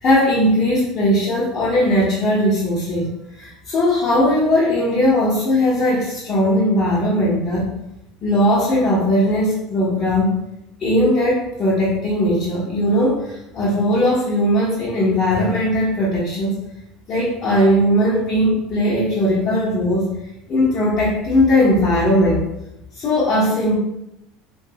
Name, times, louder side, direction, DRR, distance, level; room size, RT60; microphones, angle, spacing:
voice 1, 0.0-3.1 3.4-7.7 8.2-10.3 10.8-16.6 17.1-20.1 20.5-22.4 22.9-23.8, left 1 dB, 40° left, -8 dB, 0.9 m, -18 dB
3.1 x 2.4 x 2.7 m, 0.84 s
figure-of-eight pair, 70°, 0 cm